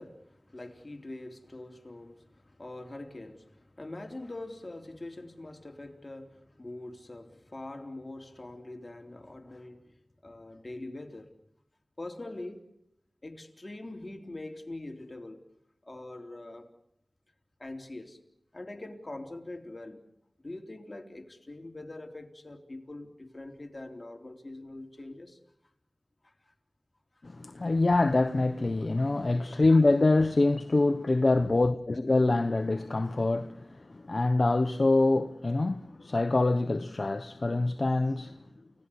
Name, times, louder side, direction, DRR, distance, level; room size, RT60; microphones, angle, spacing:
voice 1, 0.0-9.9 10.2-11.4 12.0-12.7 13.2-15.4 15.8-16.7 17.6-18.2 18.5-20.0 20.4-25.4 26.2-26.5 31.3-31.5, left 2 dB, 40° left, 3.6 m, -43 dB
voice 2, 27.2-38.4, left 2 dB, 60° left, 0.9 m, -25 dB
30.0 x 17.5 x 8.4 m
wide cardioid pair, 45°, 0 cm